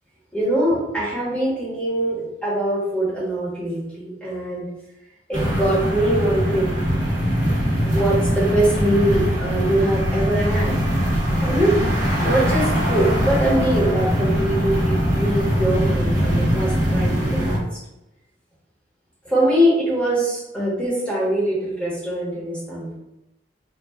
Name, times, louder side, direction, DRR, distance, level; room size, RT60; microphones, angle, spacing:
voice 1, 0.3-4.7 5.3-6.8 7.8-10.7 11.4-11.8 12.2-17.8 19.2-22.9, right 1 dB, 5° left, -8 dB, 1.1 m, -22 dB
sound 1, 5.3-17.6, equal, 40° right, 1.0 m, -21 dB
3.1 x 2.4 x 2.3 m, 0.90 s
head